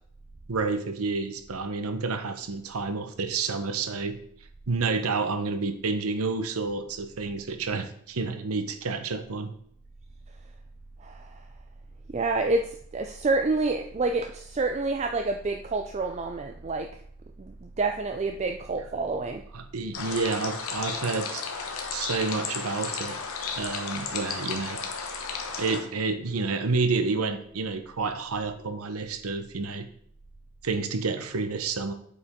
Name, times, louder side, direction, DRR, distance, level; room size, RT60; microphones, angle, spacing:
voice 1, 0.5-4.2 4.7-9.5 19.5-21.4 21.9-23.2 23.6-24.8 25.6-29.9 30.6-31.9, right 4 dB, 80° right, 9 dB, 0.8 m, -29 dB
voice 2, 12.1-16.9 17.4-19.4, right 3 dB, 30° right, 5 dB, 0.3 m, -28 dB
sound 1, 19.9-25.8, left 5 dB, 70° left, 1.1 m, -33 dB
8.3 x 5.1 x 3.6 m, 0.63 s
head